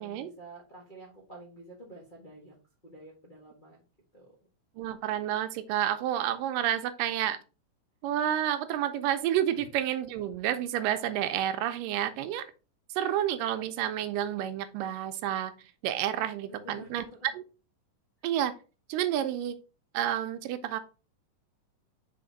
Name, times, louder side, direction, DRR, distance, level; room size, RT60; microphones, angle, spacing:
voice 1, 0.0-2.5 2.8-3.8 4.1-4.3 9.5-9.7 16.4-17.3, right 1 dB, 65° left, -5 dB, 0.5 m, -49 dB
voice 2, 4.8-7.4 8.0-12.5 13.0-15.5 15.8-17.0 18.2-18.5 18.9-19.6 19.9-20.8, right 11 dB, 85° right, 10 dB, 2.3 m, -30 dB
5.6 x 4.3 x 3.9 m, 0.33 s
omnidirectional pair, 3.8 m